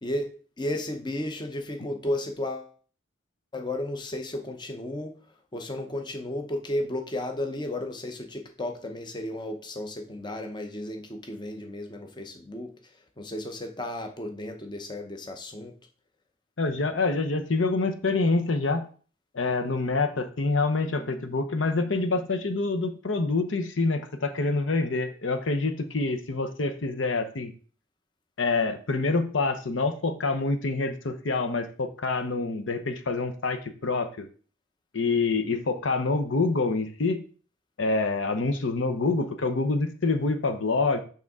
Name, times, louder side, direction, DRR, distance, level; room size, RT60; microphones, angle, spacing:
voice 1, 0.0-2.7 3.5-5.2 5.5-12.7 13.2-15.7, left 1 dB, 25° left, 0.8 m, -33 dB
voice 2, 16.6-18.9 19.3-27.5 28.4-34.3 34.9-37.2 37.8-41.0, left 3 dB, 80° left, 0.9 m, -26 dB
6.5 x 5.8 x 3.6 m
head